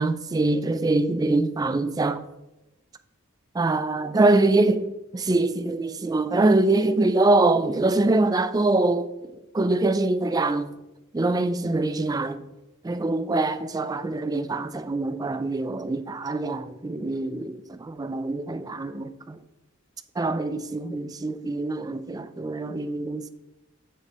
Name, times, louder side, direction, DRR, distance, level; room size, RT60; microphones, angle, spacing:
voice 1, 0.0-2.2 3.5-4.8 5.1-10.7 11.1-12.4 12.8-19.4 20.2-23.3, right 2 dB, 20° right, 0.3 m, -24 dB
7.1 x 6.6 x 3.0 m
head